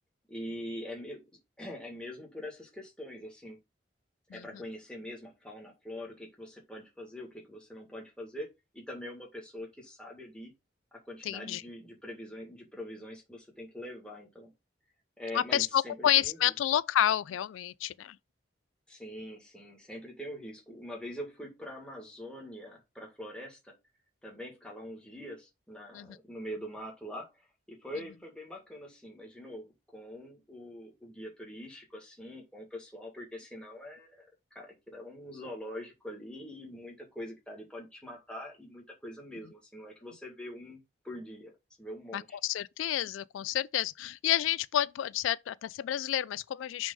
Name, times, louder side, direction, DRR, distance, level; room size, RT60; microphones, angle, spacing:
voice 1, 0.3-1.3 1.6-3.6 4.3-8.5 8.7-10.5 10.9-14.5 15.2-16.5 18.9-23.7 24.2-42.4, left 1 dB, 5° left, 1.8 m, -44 dB
voice 2, 11.2-11.6 15.3-18.2 25.9-26.1 42.1-46.9, left 11 dB, 90° left, 0.3 m, -29 dB
6.1 x 3.5 x 5.3 m
head